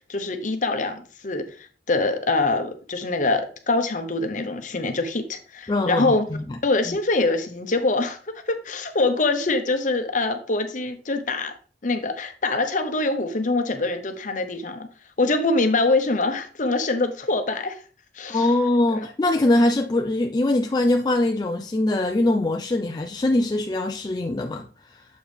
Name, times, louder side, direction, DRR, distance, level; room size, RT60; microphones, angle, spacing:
voice 1, 0.1-6.3 6.6-11.5 11.8-14.9 15.2-17.8 18.1-18.5 18.9-19.0, left 3 dB, 45° left, 0.9 m, -24 dB
voice 2, 5.7-6.6 6.9-7.0 18.3-25.1, left 2 dB, 25° left, 0.3 m, -22 dB
7.1 x 4.6 x 3.3 m
head